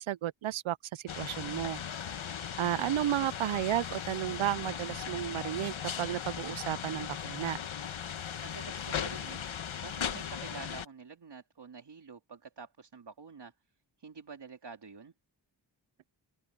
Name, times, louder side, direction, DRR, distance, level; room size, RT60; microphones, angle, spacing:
voice 1, 0.0-1.8 2.6-7.6, right 12 dB, 85° right, 0.6 m, -33 dB
sound 1, 1.1-10.9, left 8 dB, 80° left, 1.4 m, -38 dB
voice 2, 8.4-9.5 9.8-13.5 14.0-15.1, right 5 dB, 60° right, 3.0 m, -48 dB
open air
wide cardioid pair, 85°, 47 cm